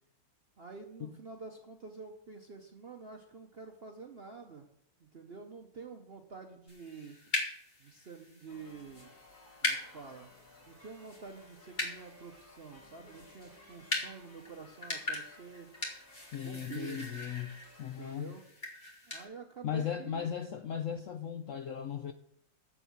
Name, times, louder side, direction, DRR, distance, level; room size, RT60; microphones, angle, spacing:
voice 1, 0.6-4.7 5.0-7.2 7.8-9.2 9.6-10.3 10.7-15.7 16.4-17.1 17.8-18.4 19.0-20.3, right 5 dB, 55° right, 0.7 m, -48 dB
sound 1, 6.7-19.2, left 2 dB, 25° left, 2.1 m, -41 dB
sound 2, 8.5-18.1, left 2 dB, 45° left, 2.7 m, -58 dB
voice 2, 16.3-18.3 19.6-22.1, left 8 dB, 85° left, 0.7 m, -37 dB
7.5 x 7.3 x 7.2 m
omnidirectional pair, 2.0 m